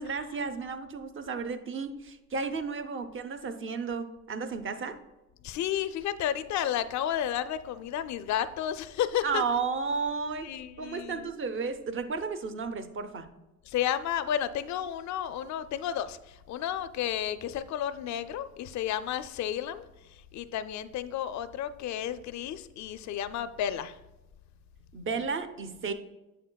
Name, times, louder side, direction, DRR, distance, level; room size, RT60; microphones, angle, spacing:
voice 1, 0.0-5.0 9.2-13.3 24.9-25.9, right 5 dB, 45° right, 9 dB, 0.7 m, -33 dB
voice 2, 5.4-9.4 10.4-11.3 13.7-19.9 20.3-24.0, left 10 dB, 70° left, 12 dB, 0.4 m, -32 dB
7.8 x 6.5 x 2.3 m, 1.0 s
cardioid pair, 90°, 30 cm